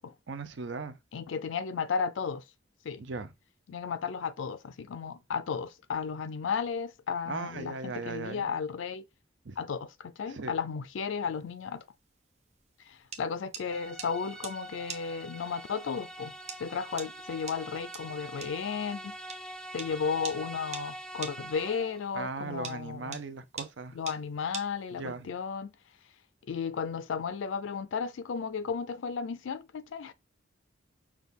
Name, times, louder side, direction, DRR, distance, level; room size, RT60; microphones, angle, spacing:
voice 1, 0.3-1.0 3.0-3.3 7.3-8.5 9.4-9.6 10.3-10.5 22.1-24.0 24.9-25.3, right 4 dB, 70° right, 0.6 m, -38 dB
voice 2, 1.1-2.4 2.8-3.0 3.7-9.0 9.6-11.8 12.9-16.3 16.6-19.1 19.7-23.2 23.9-25.7 26.5-30.1, left 6 dB, 85° left, 0.4 m, -34 dB
sound 1, 11.3-25.3, right 5 dB, 35° right, 0.7 m, -45 dB
sound 2, 13.7-22.1, right 1 dB, 5° left, 0.4 m, -44 dB
6.0 x 2.3 x 3.5 m
head